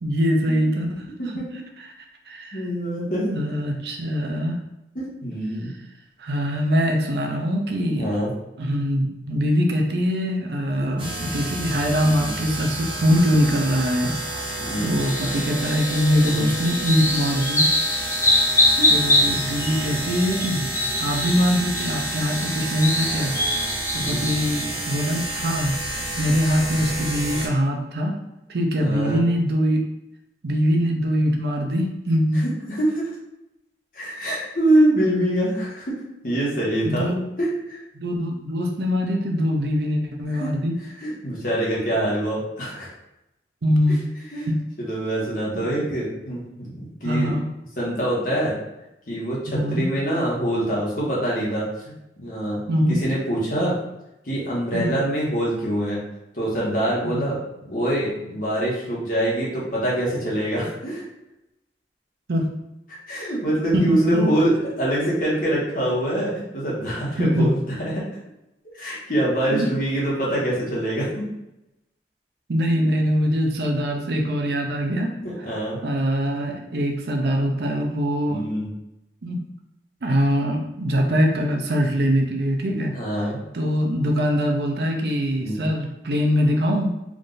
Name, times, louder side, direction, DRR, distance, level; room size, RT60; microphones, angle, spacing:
voice 1, 0.0-1.1 2.3-2.7 3.3-4.6 5.6-5.8 6.2-8.1 8.6-14.1 14.8-17.7 18.9-23.4 23.9-25.8 26.2-28.1 28.5-29.8 30.4-32.4 36.8-37.2 37.9-40.8 43.6-44.1 44.5-44.6 45.8-45.9 47.0-47.4 49.5-49.9 52.7-53.0 54.7-55.0 57.0-57.3 62.3-62.4 63.7-64.4 67.2-67.5 69.5-69.7 72.5-78.4 79.2-79.4 80.0-82.9 83.2-86.9, equal, 65° right, 2 dB, 0.5 m, -23 dB
voice 2, 2.5-3.3 4.9-5.7 7.9-8.3 12.2-12.3 14.6-14.9 16.2-16.5 18.3-18.4 18.8-18.9 24.0-24.3 26.7-26.8 28.8-29.2 32.4-33.1 33.9-37.1 37.4-37.8 40.4-40.5 41.0-42.9 43.9-44.0 44.3-44.5 44.8-47.3 47.8-48.6 49.1-52.6 52.9-53.8 54.2-56.0 56.3-57.4 57.7-61.0 62.9-68.0 68.7-71.3 75.2-75.8 78.3-78.7 82.9-83.4 85.4-85.7, right 1 dB, 50° left, -5 dB, 1.2 m, -25 dB
sound 1, 11.0-27.5, right 1 dB, 30° right, 1.0 m, -30 dB
sound 2, 15.0-24.6, left 1 dB, 15° left, 0.6 m, -24 dB
3.6 x 2.5 x 3.9 m, 0.90 s
head